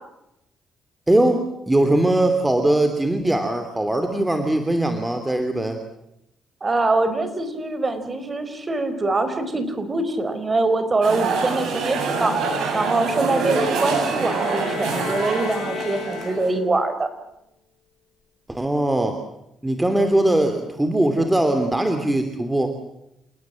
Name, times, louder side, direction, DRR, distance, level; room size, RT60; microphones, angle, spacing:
voice 1, 1.1-5.8 18.5-19.2 19.6-22.7, right 1 dB, 10° right, 6 dB, 3.0 m, -20 dB
voice 2, 6.6-12.4 12.7-17.1, right 2 dB, 30° right, 11 dB, 4.6 m, -23 dB
sound 1, 11.0-16.5, right 4 dB, 75° right, 7.7 m, -25 dB
sound 2, 13.6-16.8, left 8 dB, 65° left, 3.7 m, -34 dB
29.5 x 18.5 x 7.6 m, 0.84 s
cardioid pair, 90°, 0 cm